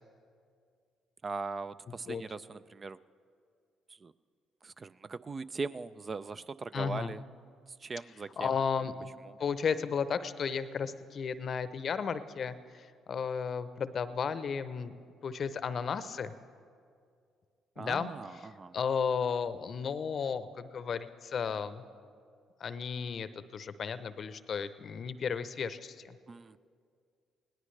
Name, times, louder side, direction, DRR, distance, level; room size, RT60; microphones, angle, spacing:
voice 1, 1.2-3.0 3.9-4.1 4.6-7.2 7.7-8.5 9.2-9.4 17.8-18.7 26.3-26.6, right 4 dB, 35° right, 14 dB, 0.4 m, -40 dB
voice 2, 6.7-7.1 8.4-9.1 9.4-14.9 15.2-16.3 17.8-18.1 18.7-21.8 22.6-26.2, left 6 dB, 55° left, 13 dB, 0.7 m, -34 dB
21.0 x 18.0 x 3.3 m, 2.3 s
hypercardioid pair, 50°, 0 cm